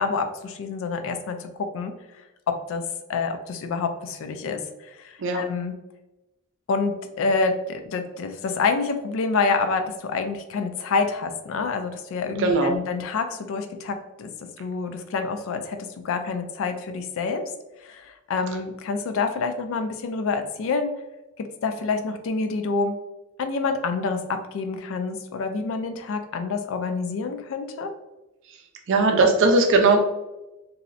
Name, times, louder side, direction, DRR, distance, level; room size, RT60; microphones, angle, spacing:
voice 1, 0.0-1.9 2.5-2.8 3.1-4.6 5.0-5.7 6.7-14.3 14.6-15.8 16.0-17.4 17.8-20.9 21.4-22.9 23.4-27.9, left 4 dB, 65° left, 7 dB, 0.3 m, -27 dB
voice 2, 12.4-12.8 28.9-30.0, right 3 dB, 60° right, 4 dB, 0.4 m, -18 dB
2.6 x 2.0 x 2.4 m, 0.97 s
head